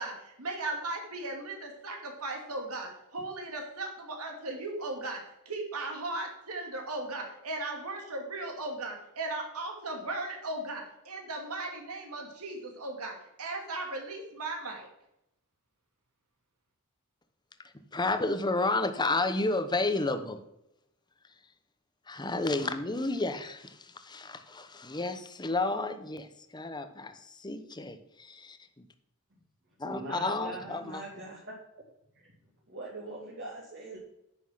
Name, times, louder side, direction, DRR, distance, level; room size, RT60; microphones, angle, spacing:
voice 1, 0.0-14.9, right 2 dB, 85° right, 2 dB, 2.5 m, -37 dB
voice 2, 17.9-20.4 22.1-26.3 26.5-27.1 27.4-28.6 29.8-31.0, left 2 dB, 20° left, 9 dB, 0.9 m, -31 dB
voice 3, 29.8-31.5 32.1-32.3 32.7-34.0, right 2 dB, 55° right, -5 dB, 2.5 m, -42 dB
9.6 x 6.2 x 5.9 m, 0.83 s
head